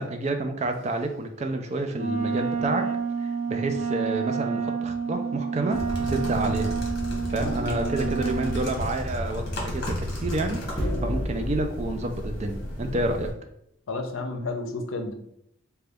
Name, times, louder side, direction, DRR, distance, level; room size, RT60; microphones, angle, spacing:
voice 1, 0.0-2.8 3.5-5.8 6.1-6.8 7.3-9.9 10.2-13.3, right 2 dB, 35° right, 5 dB, 0.4 m, -29 dB
Wind instrument woodwind instrument, 1.9-8.7, right 6 dB, 50° right, 0.9 m, -29 dB
sound 1, 5.7-13.3, left 1 dB, 50° left, 1.0 m, -33 dB
voice 2, 7.4-8.2 13.9-15.1, left 2 dB, 75° left, 4 dB, 0.6 m, -32 dB
sound 2, 10.8-13.1, left 1 dB, 20° left, 0.7 m, -32 dB
3.9 x 2.2 x 3.4 m, 0.73 s
head